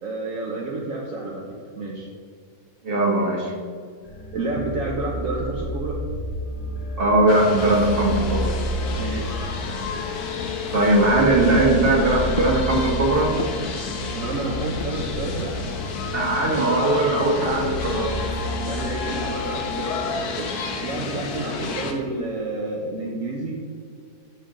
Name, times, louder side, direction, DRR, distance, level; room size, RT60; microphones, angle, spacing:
voice 1, 0.0-2.1 4.3-6.0 8.9-9.4 14.1-15.7 18.6-20.5 20.8-23.5, right 2 dB, 60° right, -2 dB, 1.3 m, -30 dB
voice 2, 2.8-3.6 7.0-8.6 10.7-13.4 16.1-18.2, right 2 dB, 35° right, -1 dB, 1.8 m, -20 dB
sound 1, 4.0-20.1, left 1 dB, 40° left, 2.2 m, -32 dB
sound 2, 7.3-21.9, left 4 dB, 80° left, 1.5 m, -31 dB
sound 3, 11.2-13.9 14.2-14.3 14.5-15.5 15.8-16.0 16.4-16.6, left 5 dB, 65° left, 0.5 m, -36 dB
12.5 x 6.3 x 3.8 m, 2.1 s
omnidirectional pair, 1.6 m